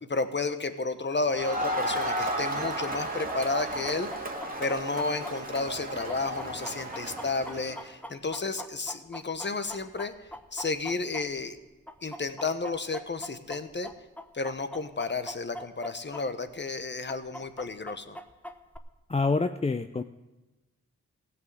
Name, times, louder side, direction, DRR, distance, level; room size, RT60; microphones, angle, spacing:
voice 1, 0.1-4.1 4.6-10.1 10.5-11.6 12.0-13.9 14.3-18.2, left 3 dB, 35° left, 10 dB, 1.1 m, -32 dB
Crowd, 1.3-7.9, right 1 dB, 30° right, 2.0 m, -33 dB
Chicken rooster, 3.3-11.6 11.9-16.2 16.5-16.6 17.1-18.8, equal, 5° left, 1.1 m, -42 dB
voice 2, 19.1-20.0, left 3 dB, 20° left, 9 dB, 0.5 m, -26 dB
15.5 x 6.2 x 7.8 m, 1.1 s
cardioid pair, 40°, 31 cm